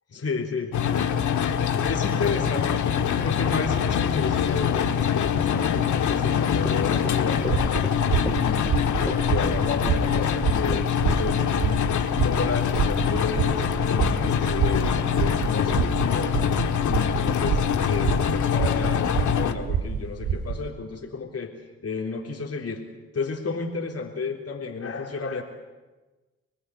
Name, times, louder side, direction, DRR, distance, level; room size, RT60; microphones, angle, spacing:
voice 1, 0.1-0.7 1.7-2.9 3.2-7.6 8.2-11.9 12.2-16.5 16.9-21.5 21.8-22.8 23.1-25.4, left 4 dB, 50° left, 2 dB, 3.7 m, -32 dB
sound 1, 0.7-19.5, left 8 dB, 70° left, 1.7 m, -24 dB
Run / Walk footsteps, 6.2-11.3 11.5-11.7, left 1 dB, 10° left, 2.3 m, -36 dB
sound 2, 7.5-20.7, right 7 dB, 75° right, 2.2 m, -28 dB
27.0 x 19.5 x 9.7 m, 1.2 s
hypercardioid pair, 40°, 31 cm